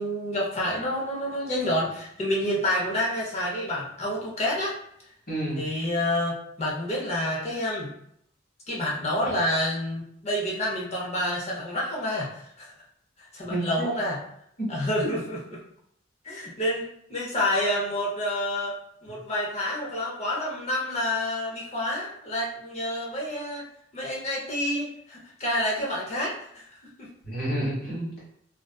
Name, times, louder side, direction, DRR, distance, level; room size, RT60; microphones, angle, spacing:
voice 1, 0.0-4.8 5.6-7.9 8.7-12.7 13.2-14.2 14.7-15.6 16.2-18.8 19.0-23.6 23.9-27.1, left 1 dB, 35° left, -4 dB, 0.6 m, -28 dB
voice 2, 5.3-5.6 9.2-9.3 13.5-13.9 14.6-14.7 15.0-15.1 27.2-28.3, right 1 dB, 50° left, -6 dB, 1.2 m, -30 dB
2.5 x 2.3 x 2.2 m, 0.71 s
head